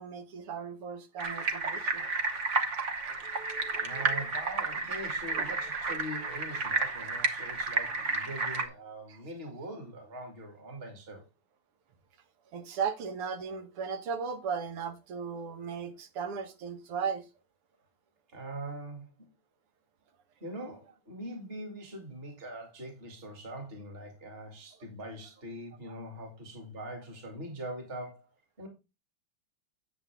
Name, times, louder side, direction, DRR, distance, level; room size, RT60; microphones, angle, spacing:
voice 1, 0.0-2.1 3.2-4.0 12.5-17.3, right 6 dB, 85° right, 2.1 m, -36 dB
sound 1, 1.2-8.7, right 3 dB, 45° right, 1.0 m, -32 dB
voice 2, 3.7-11.3 18.3-19.3 20.4-28.3 28.6-28.7, right 1 dB, 25° right, 2.3 m, -42 dB
8.8 x 7.7 x 3.5 m
omnidirectional pair, 2.4 m